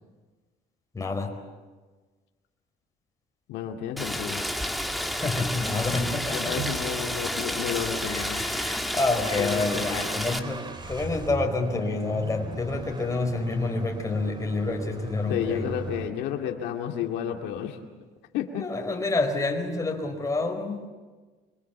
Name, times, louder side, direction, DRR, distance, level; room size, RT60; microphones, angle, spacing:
voice 1, 0.9-1.4 5.2-6.7 7.9-15.7 18.5-20.9, left 3 dB, 20° left, 3 dB, 4.7 m, -28 dB
voice 2, 3.5-4.4 6.3-8.4 9.4-10.0 15.3-17.8 18.3-18.6, left 9 dB, 85° left, 3 dB, 2.3 m, -31 dB
Rain, 4.0-10.4, equal, ahead, 2.1 m, -30 dB
Bowed string instrument, 6.6-10.3, right 7 dB, 75° right, 4.7 m, -43 dB
sound 1, 9.2-16.1, right 3 dB, 25° right, 3.0 m, -37 dB
27.0 x 24.5 x 7.2 m, 1.3 s
cardioid pair, 110°, 17 cm